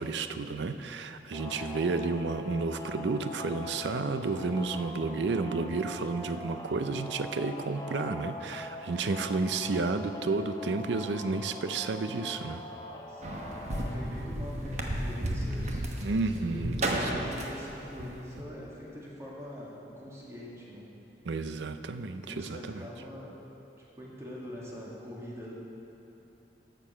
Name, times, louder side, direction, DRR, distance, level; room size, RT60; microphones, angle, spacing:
voice 1, 0.0-12.6 16.0-17.3 21.2-22.8, right 3 dB, 80° right, 10 dB, 0.5 m, -31 dB
sound 1, 1.3-14.1, left 2 dB, 20° left, 0.7 m, -43 dB
voice 2, 13.1-16.1 16.5-20.9 22.0-23.3 24.0-25.5, equal, 15° right, -5 dB, 2.0 m, -44 dB
sound 2, 13.2-18.4, right 1 dB, 40° right, 1.0 m, -33 dB
13.5 x 6.9 x 5.7 m, 2.9 s
head